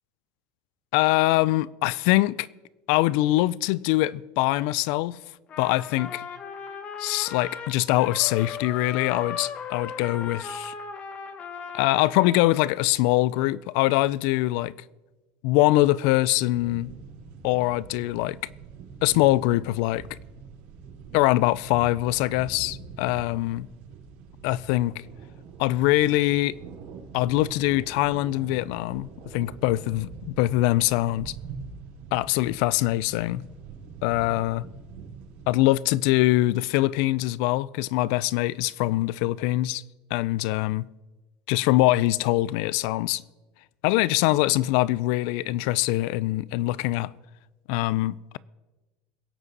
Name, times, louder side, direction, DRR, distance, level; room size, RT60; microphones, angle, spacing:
voice 1, 0.9-2.5 2.9-5.2 5.6-6.2 7.0-10.7 11.7-14.7 15.4-16.9 17.4-18.4 19.0-20.1 21.1-23.7 24.4-25.0 25.6-26.6 27.1-31.3 32.1-33.4 34.0-34.7 35.5-39.8 40.1-40.9 41.5-43.2 43.8-47.1 47.7-48.4, left 17 dB, 60° left, 0.4 m, -23 dB
Trumpet, 5.5-12.8, left 6 dB, 30° left, 1.1 m, -37 dB
sound 1, 16.4-35.6, right 6 dB, 65° right, 3.8 m, -43 dB
22.5 x 8.3 x 4.1 m
cardioid pair, 160°, 5 cm